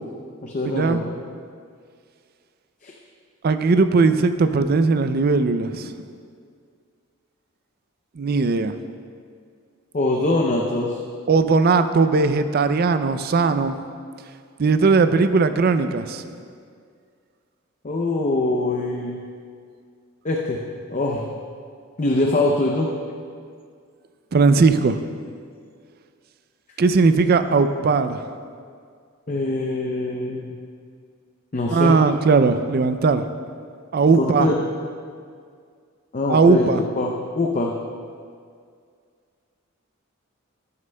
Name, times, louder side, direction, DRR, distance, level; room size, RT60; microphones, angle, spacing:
voice 1, 0.4-1.1 2.8-2.9 9.9-11.0 17.8-19.2 20.2-20.6 20.9-21.3 22.0-22.9 29.3-30.5 31.5-32.0 34.2-34.6 36.1-37.7, left 2 dB, 35° left, 0 dB, 0.5 m, -23 dB
voice 2, 3.4-5.9 8.2-8.7 11.3-13.8 14.6-16.3 24.3-25.0 26.8-28.2 31.7-33.2 33.9-34.5 36.3-36.8, right 4 dB, 45° right, 10 dB, 0.4 m, -18 dB
12.5 x 9.6 x 2.2 m, 2.2 s
head